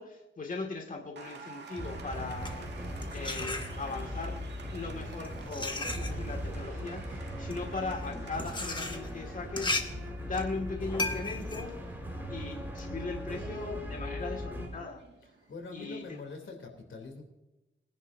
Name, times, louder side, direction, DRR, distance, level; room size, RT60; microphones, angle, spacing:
voice 1, 0.0-4.4 4.7-11.9 12.3-15.0 15.7-16.2, left 3 dB, 40° left, 1 dB, 2.1 m, -39 dB
Applause, 1.2-16.5, right 4 dB, 60° right, 2.0 m, -52 dB
sound 1, 1.8-14.7, equal, 10° right, 4.3 m, -39 dB
sound 2, 2.2-4.2 4.9-12.8, left 2 dB, 25° left, 1.6 m, -37 dB
voice 2, 4.8-5.1 15.5-17.2, left 4 dB, 80° left, 2 dB, 3.2 m, -44 dB
22.5 x 11.0 x 2.7 m, 1.0 s
cardioid pair, 85°, 20 cm